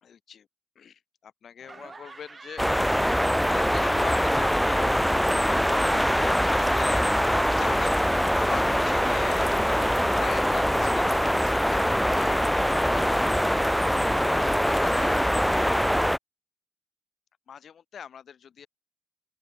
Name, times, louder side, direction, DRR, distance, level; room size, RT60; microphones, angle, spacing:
voice 1, 0.0-0.5 0.8-2.6 3.4-5.1 5.4-8.0 8.4-9.5 9.9-13.7 14.2-15.7 17.5-18.7, left 8 dB, 55° left, 3.9 m, -42 dB
Laughter, 1.6-4.4 4.6-7.6, right 4 dB, 25° right, 2.5 m, -50 dB
sound 1, 2.6-16.2, equal, ahead, 0.7 m, -23 dB
open air
cardioid pair, 90°, 0 cm